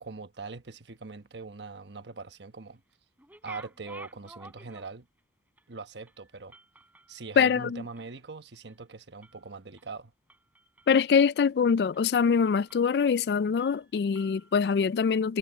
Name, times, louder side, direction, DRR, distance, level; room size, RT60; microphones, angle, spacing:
voice 1, 0.0-2.8 3.4-5.1 5.7-6.5 7.1-10.1, right 4 dB, 85° right, 1.2 m, -42 dB
sound 1, 3.2-5.2 5.6-5.7 6.1-8.2 8.5-8.8 9.2-9.9 10.3-11.0 11.4-11.6 11.9-12.1 12.4-13.3 13.6-14.7, right 2 dB, 10° right, 3.6 m, -52 dB
voice 2, 7.4-7.8 10.9-15.4, left 6 dB, 65° left, 0.3 m, -24 dB
head